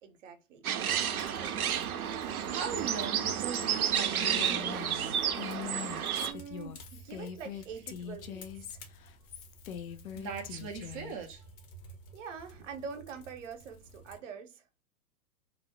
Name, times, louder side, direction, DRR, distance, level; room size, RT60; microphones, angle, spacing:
voice 1, 0.0-2.0 6.1-8.8 12.1-14.6, right 6 dB, 60° right, 0.7 m, -45 dB
sound 1, 0.6-6.3, right 9 dB, 85° right, 0.5 m, -31 dB
sound 2, 0.8-14.2, right 2 dB, 40° left, 0.8 m, -53 dB
voice 2, 2.1-5.2 10.2-11.5, right 5 dB, 25° right, 0.3 m, -40 dB
Female speech woman speaking, 4.1-11.2, left 8 dB, 75° left, 0.5 m, -42 dB
2.5 x 2.0 x 3.0 m
hypercardioid pair, 110°, 42 cm